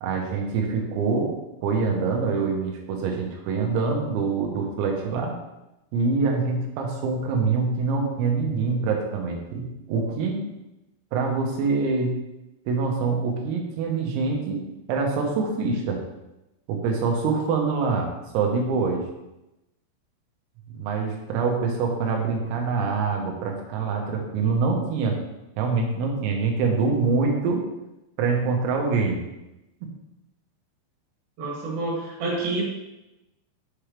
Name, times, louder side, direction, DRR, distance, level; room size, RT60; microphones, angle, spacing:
voice 1, 0.0-1.4 1.6-5.4 5.9-10.4 11.1-12.2 12.7-16.0 16.7-18.1 18.3-19.1 20.7-25.2 25.6-27.6 28.2-29.2, right 4 dB, 90° right, 1 dB, 4.1 m, -25 dB
voice 2, 31.4-32.6, right 2 dB, 55° right, -5 dB, 3.4 m, -28 dB
8.7 x 7.6 x 3.4 m, 0.94 s
omnidirectional pair, 5.9 m